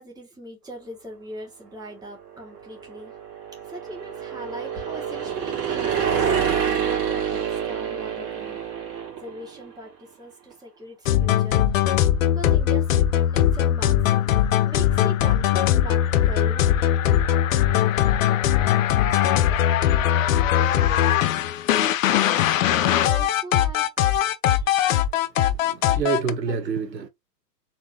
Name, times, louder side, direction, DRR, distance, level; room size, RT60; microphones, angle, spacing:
voice 1, 0.0-3.1 3.7-6.0 6.3-8.6 9.2-11.7 12.2-14.4 14.7-16.6 17.9-18.2 22.6-24.0 26.5-26.6, right 1 dB, 10° right, 2.0 m, -40 dB
sound 1, 2.6-9.5, right 8 dB, 35° right, 2.6 m, -27 dB
sound 2, 11.1-26.3, left 11 dB, 55° left, 0.7 m, -20 dB
voice 2, 25.4-27.1, right 6 dB, 90° right, 1.1 m, -28 dB
4.4 x 4.0 x 2.7 m
hypercardioid pair, 120°, 49 cm